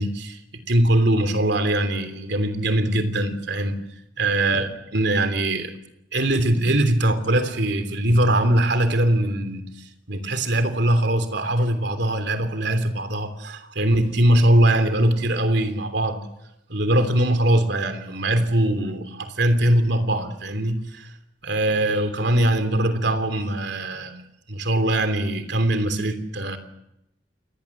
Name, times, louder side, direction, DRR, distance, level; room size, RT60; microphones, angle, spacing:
voice 1, 0.0-3.8 4.2-5.7 6.1-9.7 10.1-16.2 16.7-21.1 21.4-24.1 24.5-26.6, right 1 dB, 65° right, 10 dB, 3.2 m, -21 dB
29.0 x 20.0 x 7.3 m, 0.82 s
head